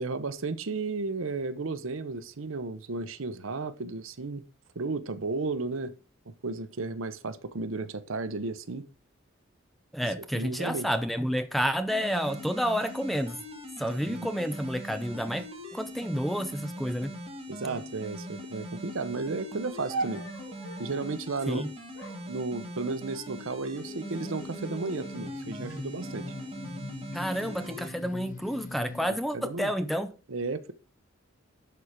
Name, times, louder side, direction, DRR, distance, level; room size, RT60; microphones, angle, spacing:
voice 1, 0.0-4.4 4.8-5.9 6.3-8.9 10.2-10.9 14.0-14.3 17.5-20.2 20.8-21.7 22.3-26.3 29.3-29.7 30.3-30.7, right 3 dB, 75° right, 0.8 m, -34 dB
voice 2, 9.9-13.4 13.8-15.5 15.7-17.1 21.5-21.7 27.1-30.1, equal, ahead, 0.7 m, -30 dB
sound 1, 11.9-27.9, equal, 30° right, 2.0 m, -42 dB
sound 2, 19.9-21.1 21.9-23.2 23.9-24.4 24.8-25.4 26.0-27.0, right 3 dB, 85° left, 4.7 m, -40 dB
sound 3, 23.7-29.1, left 2 dB, 40° left, 0.6 m, -42 dB
11.0 x 4.4 x 5.1 m
head